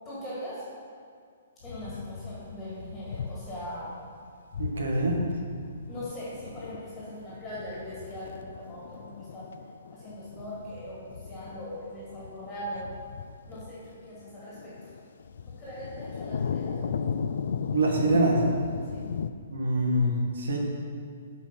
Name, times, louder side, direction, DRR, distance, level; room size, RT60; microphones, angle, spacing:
voice 1, 0.0-0.6 1.6-3.9 5.9-9.5 9.9-12.8 13.5-14.9 15.6-17.1 18.9-19.0, equal, 5° left, -9 dB, 2.3 m, -40 dB
sound 1, 1.6-3.7 4.0-4.1 4.5-19.3, left 6 dB, 70° left, 0.4 m, -37 dB
voice 2, 4.6-5.2 17.7-18.4 19.5-20.6, right 1 dB, 90° right, 0 dB, 1.7 m, -25 dB
8.2 x 5.1 x 5.8 m, 2.2 s
hypercardioid pair, 165°, 0 cm